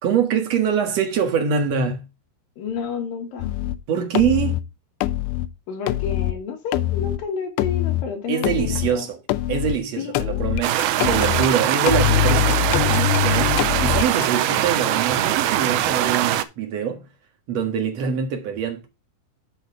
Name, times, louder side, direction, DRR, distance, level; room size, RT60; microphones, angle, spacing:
voice 1, 0.0-2.0 3.9-4.6 8.3-9.2 9.5-17.0 17.5-18.9, right 7 dB, 55° right, 2.1 m, -24 dB
voice 2, 2.6-3.5 5.7-9.1 10.0-10.4, left 6 dB, 65° left, 2.8 m, -31 dB
sound 1, 3.4-3.8 4.1-4.6 5.0-5.5 5.9-6.3 6.7-7.2 7.6-8.1 8.4-8.9 9.3-9.8 10.1-11.5 11.9-14.3, left 15 dB, 90° left, 2.7 m, -23 dB
sound 2, 10.6-16.4, right 12 dB, 80° right, 2.4 m, -22 dB
7.2 x 6.5 x 4.7 m
omnidirectional pair, 4.7 m